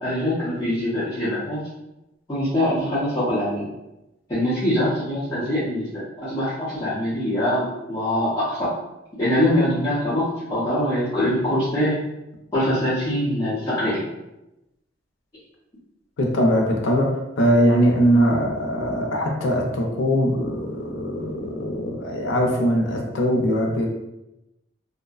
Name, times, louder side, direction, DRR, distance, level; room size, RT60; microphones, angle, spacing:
voice 1, 0.0-1.6 2.3-3.6 4.3-5.9 6.2-8.7 9.2-12.0 12.5-14.0, left 1 dB, 20° left, -13 dB, 0.6 m, -23 dB
voice 2, 16.2-23.9, equal, 80° left, 1 dB, 0.5 m, -21 dB
2.6 x 2.1 x 2.3 m, 0.93 s
head